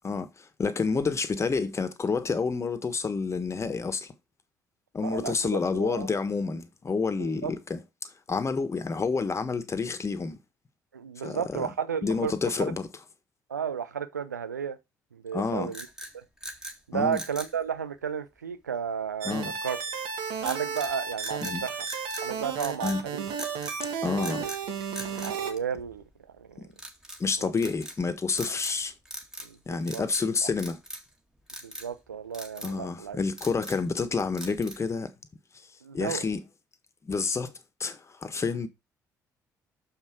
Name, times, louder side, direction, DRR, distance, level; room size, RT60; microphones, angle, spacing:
voice 1, 0.0-4.1 4.9-10.4 11.2-11.7 12.0-12.9 15.3-15.7 16.9-17.2 19.2-19.5 21.4-21.6 22.8-23.0 24.0-24.4 27.2-28.9 29.7-30.8 32.6-35.1 35.9-36.4 37.0-37.5 37.8-38.7, left 4 dB, 30° left, 1.4 m, -29 dB
voice 2, 5.0-6.1 7.2-7.5 10.9-12.3 12.6-12.7 13.5-14.8 15.1-15.9 16.1-16.2 16.9-19.8 20.4-21.7 22.2-23.3 24.2-24.5 25.1-26.0 26.4-26.7 27.4-27.5 29.4-30.0 30.4-30.5 31.6-33.2 35.8-36.2, right 7 dB, 85° right, 0.7 m, -33 dB
sound 1, 15.7-16.8 17.1-17.6 20.4-20.9 21.2-22.3 22.6-23.0 23.4-23.8 24.2-24.6 24.9-26.1 26.8-27.2 27.6-28.0 28.3-28.8 29.0-29.5 29.8-30.3 30.6-31.1 31.5-31.9 32.3-32.8 33.2-33.9 34.4-34.9, equal, 5° right, 2.0 m, -41 dB
sound 2, 19.2-25.5, right 6 dB, 65° right, 1.6 m, -33 dB
6.7 x 5.8 x 4.5 m
figure-of-eight pair, 50°, 9 cm